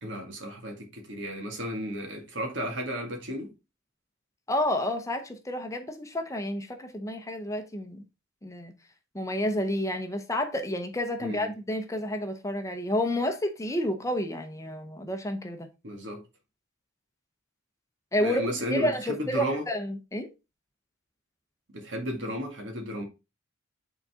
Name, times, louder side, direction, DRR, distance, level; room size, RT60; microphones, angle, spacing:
voice 1, 0.0-3.5 11.2-11.5 15.8-16.2 18.2-19.6 21.7-23.0, equal, 65° right, 1.9 m, -33 dB
voice 2, 4.5-8.0 8.4-8.7 9.1-15.7 18.1-18.4 18.7-20.3, left 1 dB, 15° left, 0.7 m, -30 dB
8.7 x 4.0 x 3.6 m
head